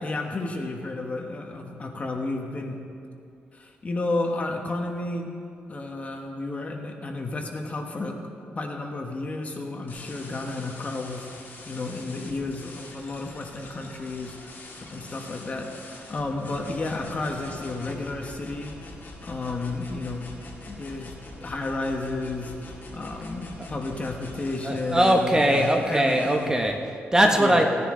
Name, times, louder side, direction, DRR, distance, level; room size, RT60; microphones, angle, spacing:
voice 1, 0.0-2.8 3.5-5.3 5.7-8.2 8.6-11.3 11.7-14.6 14.9-18.7 19.2-20.3 20.6-21.1 21.4-26.5 27.3-27.6, left 2 dB, 35° left, 2 dB, 1.2 m, -32 dB
sound 1, 9.9-26.5, left 2 dB, 55° left, 2.4 m, -43 dB
voice 2, 24.6-27.6, right 1 dB, 15° right, 3 dB, 0.9 m, -21 dB
16.5 x 10.0 x 3.8 m, 2.5 s
cardioid pair, 115°, 4 cm